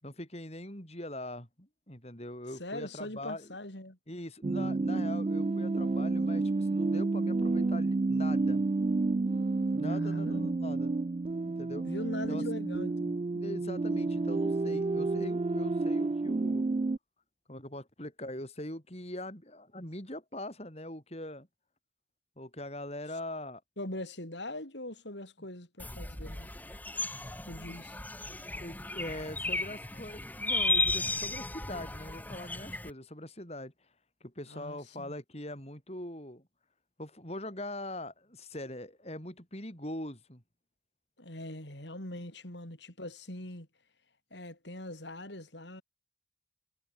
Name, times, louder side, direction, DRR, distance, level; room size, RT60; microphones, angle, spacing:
voice 1, 0.0-3.5 4.1-8.6 9.7-11.0 11.5-11.8 12.3-12.4 13.3-16.7 17.5-21.5 22.4-23.6 28.5-33.7 34.2-36.4 37.0-40.4, left 1 dB, 35° left, 7.8 m, -42 dB
voice 2, 2.6-4.0 9.9-10.5 11.8-13.2 23.8-26.5 27.5-28.0 34.5-35.2 41.2-43.7 44.3-45.8, left 1 dB, 70° left, 6.9 m, -42 dB
sound 1, 4.4-17.0, right 3 dB, 30° right, 0.3 m, -30 dB
sound 2, 25.8-32.9, left 2 dB, 10° left, 1.6 m, -34 dB
head